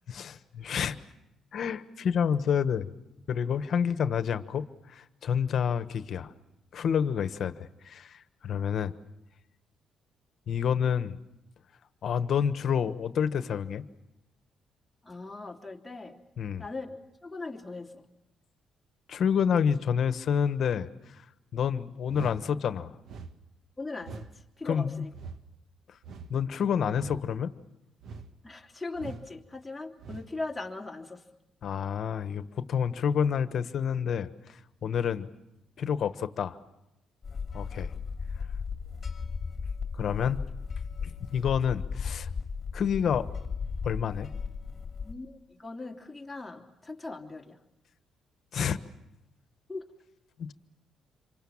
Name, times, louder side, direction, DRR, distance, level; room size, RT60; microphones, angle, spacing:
voice 1, 0.1-1.0 1.5-2.9 3.3-6.3 6.7-8.9 10.5-11.2 12.0-13.8 16.4-16.6 19.1-21.2 21.5-22.9 24.6-25.0 25.9-26.0 26.3-27.5 31.6-35.3 35.8-36.6 37.5-37.9 39.9-40.4 41.0-42.3 42.7-43.3 43.8-44.3 48.5-48.8 50.4-50.5, left 7 dB, 60° left, 11 dB, 1.3 m, -29 dB
voice 2, 15.0-16.2 16.6-18.0 23.8-25.1 28.4-31.2 45.0-47.6 49.7-49.8, left 3 dB, 10° left, 0 dB, 3.2 m, -39 dB
sound 1, 22.1-22.4 23.0-23.3 24.0-24.3 25.1-25.4 26.0-26.4 26.9-27.2 28.0-28.3 28.9-29.3 30.0-30.3, right 4 dB, 65° right, 1.7 m, -42 dB
sound 2, 37.2-45.1, left 5 dB, 35° left, 2.4 m, -36 dB
28.0 x 24.5 x 7.3 m, 0.91 s
cardioid pair, 90°, 0 cm